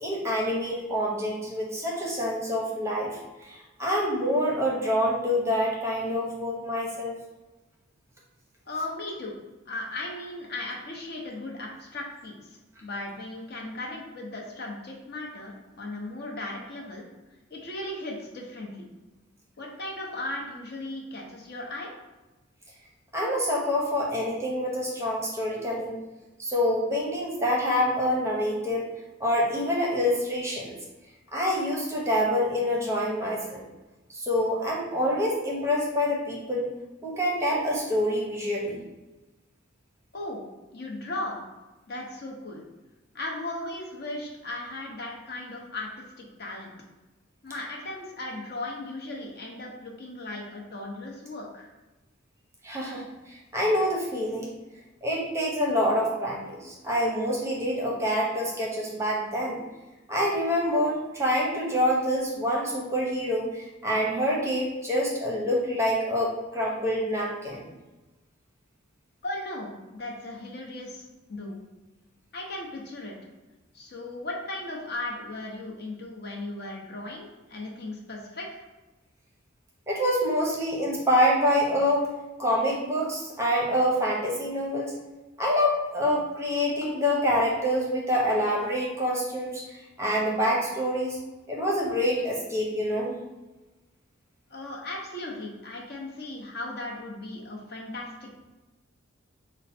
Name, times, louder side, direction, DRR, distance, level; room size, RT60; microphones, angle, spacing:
voice 1, 0.0-7.1 23.1-26.0 26.4-28.9 29.2-30.7 31.3-33.6 34.1-36.7 37.0-38.8 52.6-54.5 55.0-59.6 60.1-67.6 79.9-82.1 82.4-85.0 85.4-91.2 91.5-93.1, equal, 15° right, -3 dB, 0.7 m, -26 dB
voice 2, 8.7-9.4 9.7-17.1 17.5-18.8 19.6-21.9 40.1-40.4 40.7-41.4 41.9-42.6 43.1-46.7 47.4-51.7 61.7-61.8 69.2-71.6 72.3-73.2 73.7-78.7 94.5-98.3, left 2 dB, 50° left, -1 dB, 0.8 m, -37 dB
4.6 x 2.1 x 4.2 m, 1.1 s
head